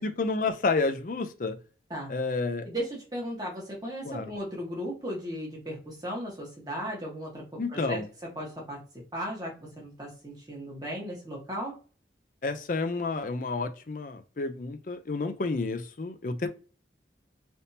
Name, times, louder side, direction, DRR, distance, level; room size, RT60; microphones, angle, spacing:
voice 1, 0.0-1.6 2.1-2.7 4.0-4.3 7.6-8.1 12.4-16.5, left 3 dB, 45° left, 0.4 m, -30 dB
voice 2, 2.6-8.0 8.3-8.8 9.1-11.8, equal, 20° right, 1.2 m, -36 dB
3.4 x 2.7 x 2.7 m
head